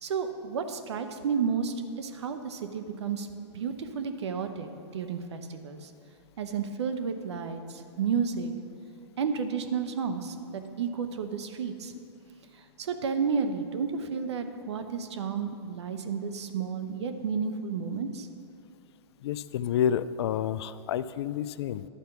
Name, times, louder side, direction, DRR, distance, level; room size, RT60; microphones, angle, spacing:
voice 1, 0.0-3.3 3.5-5.9 6.4-8.5 9.2-11.9 12.6-18.3, right 6 dB, 75° right, 8 dB, 0.8 m, -32 dB
voice 2, 19.2-21.9, left 9 dB, 65° left, 15 dB, 0.4 m, -29 dB
11.5 x 4.5 x 5.8 m, 2.5 s
hypercardioid pair, 120°, 15 cm